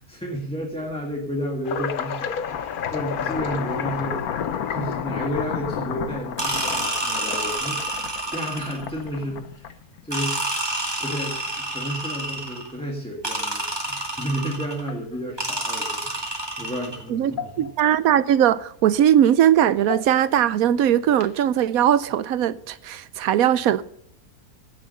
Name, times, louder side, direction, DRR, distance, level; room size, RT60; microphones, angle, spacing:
voice 1, 0.0-9.8 10.0-10.5 11.0-17.7, equal, 5° left, 1.8 m, -32 dB
sound 1, 1.6-5.5 6.3-6.4 7.4-7.5 8.3-8.6 9.0-9.1 9.6-9.7 11.1-11.2 14.0-14.1 14.8-15.5 16.8-16.9 17.3-17.9 18.3-18.4 19.7-20.4 21.1-21.4, left 7 dB, 50° left, 0.7 m, -34 dB
sound 2, 1.8-10.0, left 8 dB, 80° left, 1.4 m, -31 dB
sound 3, 6.4-8.9 10.1-12.7 13.2-14.8 15.4-17.0, right 1 dB, 15° right, 2.4 m, -28 dB
voice 2, 17.1-23.8, right 10 dB, 75° right, 1.1 m, -20 dB
15.5 x 7.4 x 5.4 m
omnidirectional pair, 1.6 m